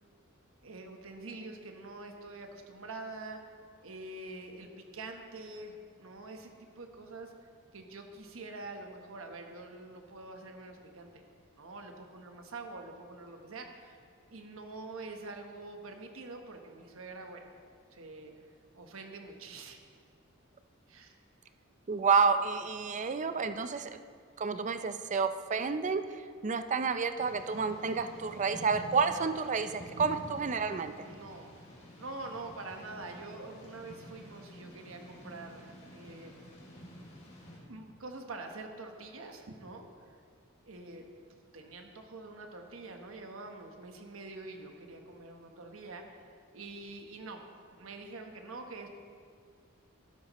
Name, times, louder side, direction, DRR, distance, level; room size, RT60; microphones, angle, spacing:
voice 1, 0.6-3.5 3.8-11.2 11.6-14.0 14.3-17.5 17.9-18.3 18.7-19.8 20.9-21.1 31.0-31.5 32.0-36.3 37.7-40.1 40.7-46.3 46.5-47.4 47.7-48.9, right 3 dB, 75° right, 4 dB, 1.1 m, -46 dB
voice 2, 21.9-24.0 24.4-26.0 26.4-30.9, right 5 dB, 35° right, 10 dB, 0.4 m, -30 dB
Thunder / Rain, 27.2-37.6, equal, 35° left, 2.4 m, -49 dB
12.5 x 12.0 x 3.0 m, 2.1 s
head